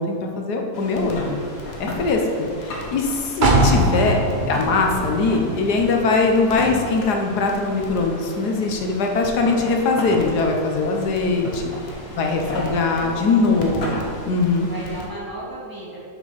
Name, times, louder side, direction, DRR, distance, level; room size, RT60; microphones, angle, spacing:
voice 1, 0.0-1.4 1.8-4.2 4.5-11.6 12.2-14.7, left 3 dB, 90° left, 2 dB, 1.6 m, -21 dB
Crackle, 0.7-15.1, left 1 dB, 45° left, 1.3 m, -38 dB
sound 1, 1.1-2.0 2.5-3.1 3.5-4.1 4.5-4.7 5.2-5.4 6.4-7.0 8.1-8.2 9.3-10.2 10.6-10.7 11.4-11.8 12.3-12.6 13.2-13.3 13.5-14.0, left 3 dB, 65° left, 1.8 m, -31 dB
sound 2, 3.4-7.2 7.5-7.6, right 1 dB, 40° right, 0.8 m, -22 dB
voice 2, 12.0-13.5 14.6-16.0, right 1 dB, 15° right, -7 dB, 1.9 m, -36 dB
7.1 x 6.1 x 6.0 m, 2.3 s
omnidirectional pair, 1.7 m